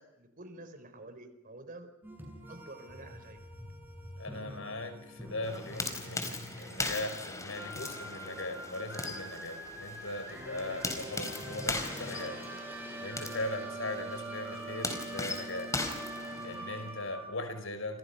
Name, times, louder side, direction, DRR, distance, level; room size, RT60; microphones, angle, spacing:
voice 1, 0.0-1.9 2.5-3.4, right 2 dB, 45° right, 10 dB, 4.3 m, -49 dB
sound 1, 2.0-17.5, right 1 dB, 10° right, 7.5 m, -44 dB
voice 2, 4.2-12.5 13.0-15.8 16.4-18.0, left 2 dB, 85° left, 9 dB, 5.4 m, -39 dB
sound 2, 5.4-16.9, left 2 dB, 15° left, 4.5 m, -39 dB
29.5 x 28.0 x 5.7 m, 0.83 s
head